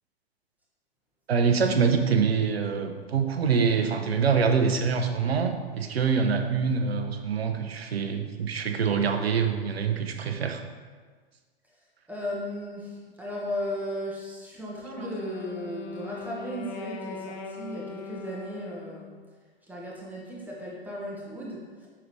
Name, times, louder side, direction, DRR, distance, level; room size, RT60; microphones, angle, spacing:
voice 1, 1.3-10.6 15.0-15.1, right 6 dB, 80° right, 6 dB, 0.8 m, -25 dB
voice 2, 12.1-19.1 19.7-21.9, equal, 5° right, -5 dB, 1.3 m, -36 dB
Wind instrument woodwind instrument, 14.7-19.2, left 6 dB, 45° left, 0.7 m, -40 dB
6.2 x 5.9 x 3.2 m, 1.5 s
figure-of-eight pair, 105°, 31 cm